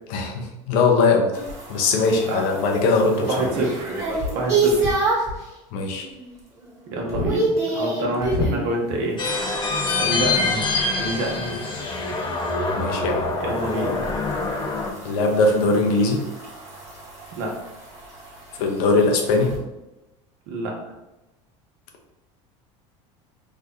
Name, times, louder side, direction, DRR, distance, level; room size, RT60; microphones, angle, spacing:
voice 1, 0.1-1.3 1.7-3.5 5.7-6.1 12.7-13.3 15.0-16.2 18.6-19.5, left 3 dB, 70° left, 2 dB, 0.8 m, -20 dB
sound 1, 1.3-5.4 5.9-6.3 6.6-8.7 11.2-19.6, right 2 dB, 20° right, 1.3 m, -28 dB
voice 2, 3.2-3.9 4.3-5.0 6.9-9.2 9.9-10.6 10.9-11.6 13.4-14.1 17.3-17.6 20.5-20.8, right 1 dB, 70° right, -1 dB, 1.1 m, -27 dB
sound 2, 9.2-14.9, left 3 dB, 30° left, 0.7 m, -25 dB
3.2 x 2.3 x 3.8 m, 0.98 s
supercardioid pair, 100°, 16 cm